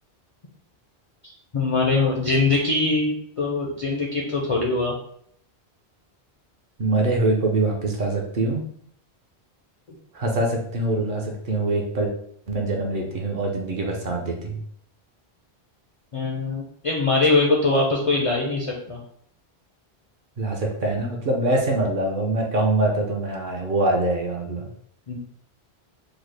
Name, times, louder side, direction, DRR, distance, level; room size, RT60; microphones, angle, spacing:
voice 1, 1.2-5.0 16.1-19.0 25.1-25.2, left 3 dB, 45° left, -2 dB, 0.4 m, -22 dB
voice 2, 6.8-8.7 10.1-12.1 12.5-14.6 20.4-24.7, right 2 dB, 55° right, 0 dB, 0.7 m, -24 dB
3.8 x 2.1 x 3.2 m, 0.66 s
omnidirectional pair, 1.1 m